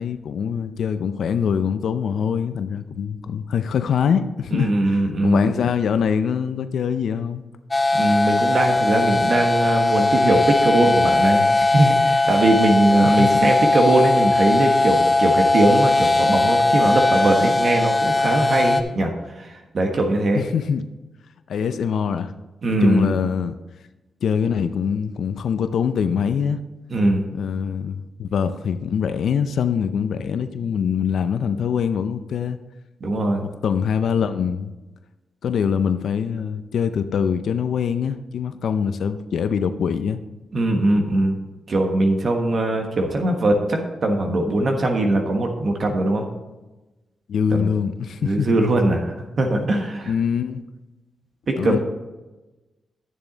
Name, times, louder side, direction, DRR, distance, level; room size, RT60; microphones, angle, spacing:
voice 1, 0.0-7.4 13.1-13.5 20.3-20.9 21.5-22.3 22.8-23.6 24.2-26.6 27.3-32.6 33.4-34.7 35.4-40.2 47.3-48.6 50.1-50.6 51.6-51.8, left 7 dB, 80° left, 10 dB, 0.5 m, -23 dB
voice 2, 4.5-5.4 7.9-20.4 22.6-23.2 26.9-27.2 33.0-33.4 40.5-41.4 41.7-46.2 47.5-47.7 48.2-50.1 51.5-51.8, right 2 dB, 60° right, 2 dB, 1.3 m, -20 dB
sound 1, 7.7-18.8, left 2 dB, 30° left, 0.9 m, -19 dB
10.5 x 7.0 x 3.9 m, 1.1 s
cardioid pair, 65°, 0 cm